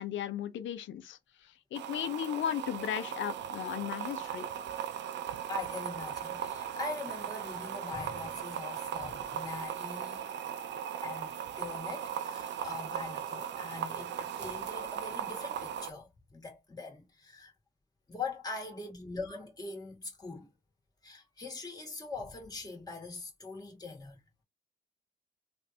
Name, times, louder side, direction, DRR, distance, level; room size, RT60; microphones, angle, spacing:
voice 1, 0.0-4.5, left 10 dB, 75° left, 0.8 m, -36 dB
sound 1, 1.7-15.9, right 9 dB, 65° right, 0.5 m, -38 dB
voice 2, 5.3-10.3 11.0-17.5 18.1-20.5 21.0-24.2, left 3 dB, 20° left, 1.9 m, -42 dB
3.2 x 2.6 x 2.8 m
cardioid pair, 90°, 20 cm